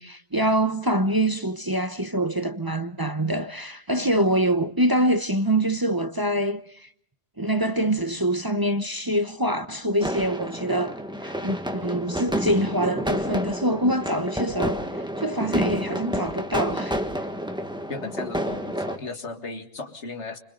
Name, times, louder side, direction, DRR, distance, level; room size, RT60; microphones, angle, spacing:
voice 1, 0.0-6.9 7.4-14.8 15.2-17.0, right 1 dB, 20° right, 0.8 m, -25 dB
sound 1, 10.0-19.0, equal, 5° right, 1.5 m, -29 dB
voice 2, 17.9-20.4, left 3 dB, 85° left, 2.2 m, -35 dB
29.5 x 25.5 x 3.9 m
omnidirectional pair, 1.1 m